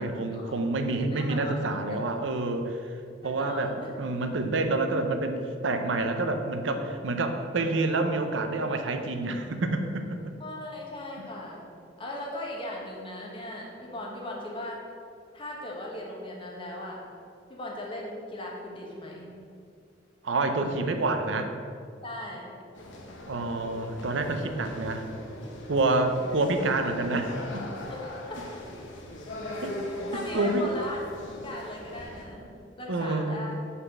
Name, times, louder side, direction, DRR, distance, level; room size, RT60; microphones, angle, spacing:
voice 1, 0.0-2.8 3.2-3.7 4.0-10.2 20.2-21.5 23.3-25.1 25.7-27.6 29.6-29.7 30.3-30.6 32.9-33.4, right 2 dB, 80° right, 6 dB, 0.6 m, -28 dB
voice 2, 1.1-2.0 3.2-3.9 10.4-11.6 12.0-14.8 15.3-17.0 17.5-19.3 22.0-22.5 25.9-26.2 27.9-28.0 28.3-28.6 29.9-31.0 31.3-32.5 32.8-33.5, left 1 dB, 30° left, -2 dB, 1.1 m, -38 dB
sound 1, 22.7-32.2, left 1 dB, 80° left, 0.9 m, -39 dB
5.4 x 4.2 x 6.0 m, 2.3 s
head